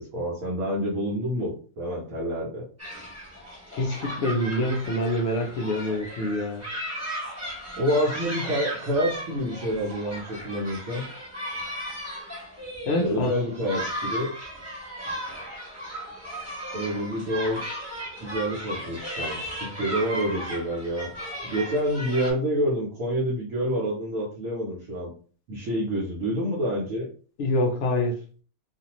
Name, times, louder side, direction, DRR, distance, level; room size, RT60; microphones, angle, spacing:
voice 1, 0.0-2.6 7.8-11.0 13.0-14.3 16.7-17.6 18.2-21.1 21.4-25.1 25.5-27.1, equal, 70° right, 1.2 m, -28 dB
sound 1, 2.8-22.3, equal, 15° right, 0.8 m, -36 dB
voice 2, 3.7-6.6 12.8-13.4 27.4-28.2, left 1 dB, 65° left, 0.7 m, -26 dB
2.5 x 2.4 x 2.9 m
omnidirectional pair, 1.5 m